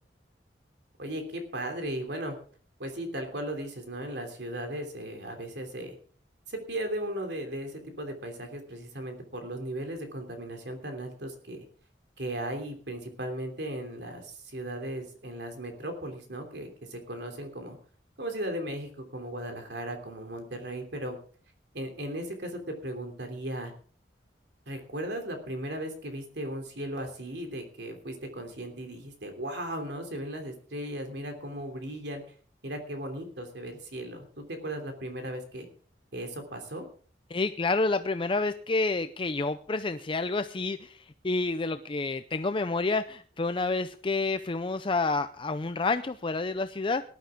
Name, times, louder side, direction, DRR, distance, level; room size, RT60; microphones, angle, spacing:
voice 1, 1.0-2.4 2.8-6.0 6.5-11.6 12.2-17.8 18.2-21.2 21.7-23.7 24.7-32.2 32.6-35.7 36.1-36.8, right 1 dB, 70° right, 5 dB, 3.1 m, -36 dB
voice 2, 37.3-40.9 41.2-47.0, left 3 dB, 30° left, 10 dB, 0.5 m, -29 dB
19.0 x 12.0 x 3.7 m, 0.43 s
head